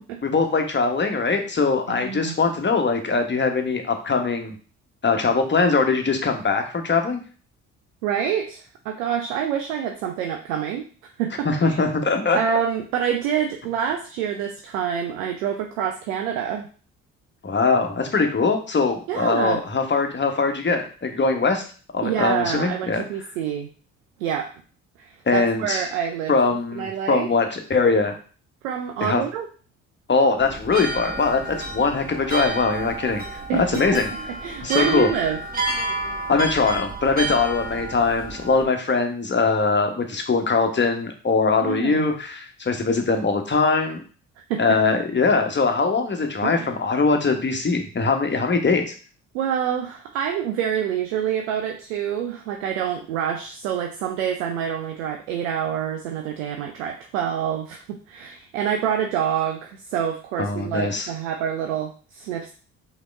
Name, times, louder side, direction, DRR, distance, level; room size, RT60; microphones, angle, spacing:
voice 1, 0.2-4.5 5.0-7.2 11.4-12.4 17.4-21.6 21.9-23.0 25.3-25.8 26.3-28.1 29.0-29.2 30.1-33.2 33.5-34.1 34.6-35.1 36.3-44.0 44.6-48.9 60.4-61.1, left 4 dB, 30° left, 5 dB, 1.2 m, -21 dB
voice 2, 1.9-2.4 8.0-10.9 11.2-11.8 12.3-16.7 19.1-19.6 22.0-23.7 24.2-24.5 25.0-26.3 26.8-27.3 28.6-29.5 33.5-34.0 34.4-35.4 41.6-42.1 44.5-44.8 46.4-46.6 49.3-62.5, right 8 dB, 80° right, 4 dB, 0.6 m, -27 dB
sound 1, 30.4-38.6, right 2 dB, 20° right, 1.2 m, -30 dB
5.0 x 2.9 x 3.4 m, 0.39 s
hypercardioid pair, 50°, 39 cm